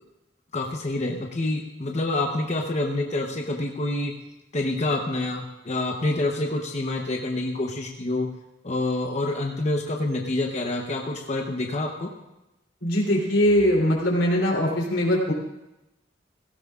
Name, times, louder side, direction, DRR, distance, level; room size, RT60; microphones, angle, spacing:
voice 1, 0.5-4.1 4.5-8.3 8.6-12.1, left 2 dB, 40° left, 1 dB, 0.9 m, -27 dB
voice 2, 12.8-15.3, equal, 85° left, -2 dB, 3.3 m, -21 dB
17.0 x 16.0 x 2.4 m, 0.94 s
head